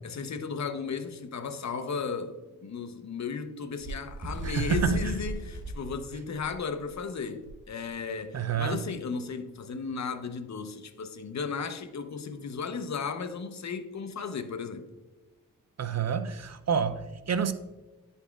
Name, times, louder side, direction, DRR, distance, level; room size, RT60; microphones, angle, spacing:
voice 1, 0.0-14.8, left 5 dB, 55° left, 0.8 m, -35 dB
Bird, 3.8-7.0 7.5-7.6 7.9-8.2 8.9-9.0, right 1 dB, 35° right, 1.8 m, -36 dB
voice 2, 4.4-5.0 8.3-8.8 15.8-17.5, right 7 dB, 50° right, 0.5 m, -28 dB
11.0 x 4.1 x 2.3 m
cardioid pair, 45°, 33 cm